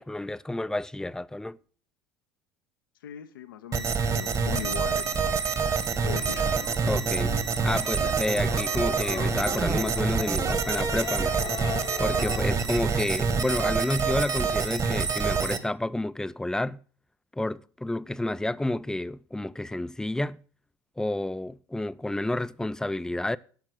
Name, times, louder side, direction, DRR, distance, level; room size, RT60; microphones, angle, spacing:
voice 1, 0.0-1.6 6.9-7.3 7.6-11.3 12.0-16.8 17.3-20.4 21.0-23.4, left 1 dB, 5° left, 0.4 m, -30 dB
voice 2, 3.0-6.5, left 11 dB, 75° left, 0.7 m, -40 dB
sound 1, 3.7-15.6, right 5 dB, 30° right, 1.3 m, -27 dB
sound 2, 5.4-12.5, left 9 dB, 35° left, 0.9 m, -39 dB
11.5 x 6.4 x 6.5 m
figure-of-eight pair, 70°, 11 cm